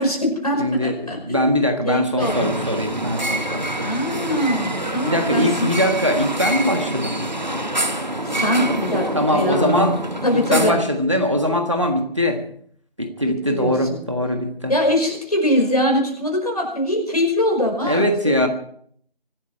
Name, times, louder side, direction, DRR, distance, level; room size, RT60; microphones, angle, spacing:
voice 1, 0.0-1.4 1.9-2.5 3.8-5.7 8.2-9.1 9.3-10.8 13.5-14.0 14.7-18.5, left 1 dB, 40° left, 2 dB, 5.4 m, -22 dB
voice 2, 0.6-3.9 5.0-7.2 9.1-10.0 10.3-12.4 13.0-14.7 17.8-18.5, equal, 30° right, 5 dB, 1.5 m, -21 dB
sound 1, 2.2-10.7, right 1 dB, 50° right, 1.4 m, -26 dB
25.0 x 12.5 x 4.5 m, 0.63 s
figure-of-eight pair, 175°, 30 cm